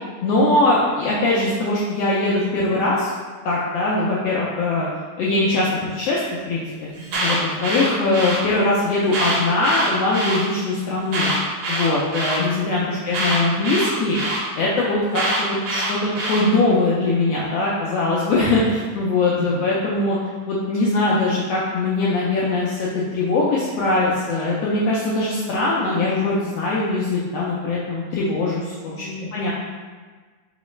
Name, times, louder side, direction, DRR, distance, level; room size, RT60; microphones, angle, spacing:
voice 1, 0.2-3.1 3.4-4.8 5.2-5.7 5.9-6.6 7.2-11.3 11.7-14.2 14.5-20.2 20.5-29.0 29.3-29.5, left 2 dB, 80° left, -6 dB, 1.4 m, -21 dB
Alarm, 6.9-8.4 9.0-10.4 11.1-12.4 13.1-14.4 15.1-16.4, right 1 dB, 65° right, 1.6 m, -24 dB
voice 2, 28.9-29.5, right 3 dB, 90° right, -1 dB, 1.2 m, -34 dB
4.7 x 3.1 x 3.1 m, 1.4 s
omnidirectional pair, 3.4 m